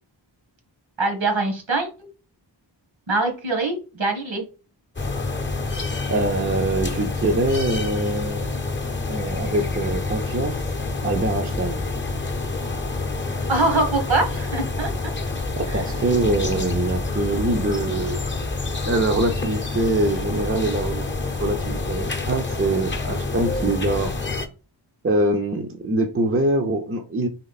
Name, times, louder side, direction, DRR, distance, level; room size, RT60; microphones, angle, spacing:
voice 1, 1.0-2.1 3.1-4.4 13.5-15.1 15.7-15.8, right 2 dB, 70° right, 1.5 m, -23 dB
sound 1, 5.0-24.5, left 3 dB, 25° left, 0.7 m, -27 dB
voice 2, 6.1-8.4 9.1-10.6 11.0-11.8 15.6-18.2 18.8-21.0 21.4-24.1 25.0-27.3, right 2 dB, 30° right, 0.6 m, -24 dB
4.3 x 3.0 x 4.1 m
wide cardioid pair, 55°, 47 cm